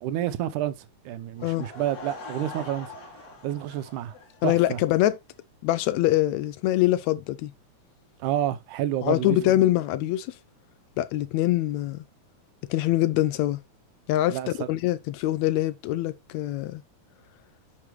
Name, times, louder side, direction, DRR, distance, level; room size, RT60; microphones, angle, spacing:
voice 1, 0.0-2.9 3.4-4.1 4.4-4.8 8.2-9.5 14.3-14.7, right 12 dB, 90° right, 2.3 m, -29 dB
Laughter / Crowd, 1.4-4.9, left 2 dB, 60° left, 3.2 m, -42 dB
voice 2, 4.4-5.2 5.6-7.5 9.0-10.3 11.0-12.0 12.7-13.6 14.1-14.4 14.7-16.8, left 15 dB, 80° left, 1.7 m, -24 dB
9.9 x 5.7 x 3.1 m
omnidirectional pair, 3.4 m